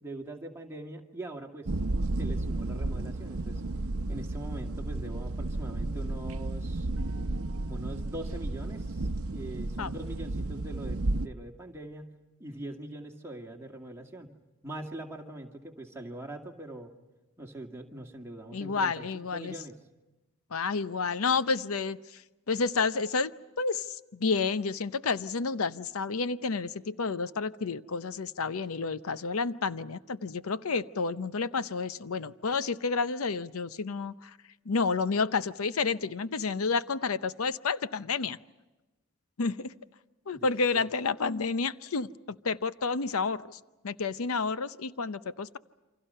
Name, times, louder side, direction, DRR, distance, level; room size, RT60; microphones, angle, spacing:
voice 1, 0.0-1.7 2.2-3.6 4.1-6.9 7.6-12.1 12.4-14.3 14.6-16.9 17.4-19.8 40.3-40.5 40.7-40.8, right 1 dB, 10° right, 2 dB, 2.1 m, -42 dB
sound 1, 1.7-11.3, right 2 dB, 85° right, 0.8 m, -33 dB
voice 2, 18.5-19.5 20.5-23.3 23.6-34.4 34.7-38.4 39.4-39.7 40.3-45.6, left 4 dB, 85° left, 14 dB, 0.7 m, -30 dB
28.5 x 26.0 x 5.6 m, 1.1 s
head